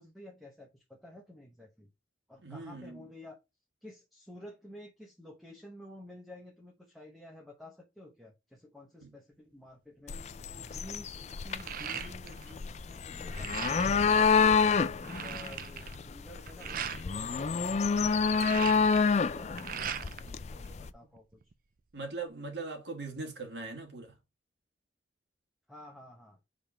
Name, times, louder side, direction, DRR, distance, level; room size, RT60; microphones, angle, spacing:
voice 1, 0.0-1.9 2.3-3.4 3.8-10.2 10.6-14.7 15.1-21.4 25.7-26.4, left 1 dB, ahead, 0.9 m, -51 dB
voice 2, 2.4-3.0 9.0-9.1 21.9-24.2, right 3 dB, 65° right, 1.7 m, -40 dB
sound 1, 10.1-20.9, left 5 dB, 35° left, 0.3 m, -28 dB
sound 2, 10.1-10.4 10.8-12.5 12.8-14.0 14.5-14.6 14.8-17.0 18.0-20.3 20.6-21.5, right 8 dB, 45° right, 0.5 m, -40 dB
5.1 x 3.6 x 5.5 m
head